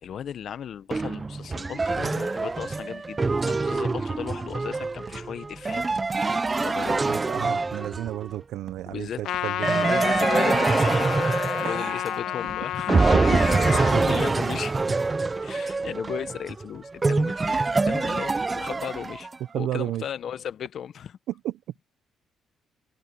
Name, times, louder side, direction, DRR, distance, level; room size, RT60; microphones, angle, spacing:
voice 1, 0.0-3.2 3.5-5.8 6.6-7.0 8.9-9.2 9.8-11.3 11.6-14.8 15.4-19.3 19.5-21.2, left 9 dB, 60° left, 1.2 m, -35 dB
sound 1, 0.7-18.6, right 6 dB, 45° right, 5.3 m, -53 dB
sound 2, 0.9-8.3 9.6-12.5 12.9-19.4, right 3 dB, 25° right, 0.8 m, -25 dB
voice 2, 7.0-9.9 11.6-11.8 19.5-20.0 21.3-21.5, right 13 dB, 80° right, 1.1 m, -32 dB
Trumpet, 9.2-14.0, left 12 dB, 75° left, 0.7 m, -30 dB
cardioid pair, 85°, 0 cm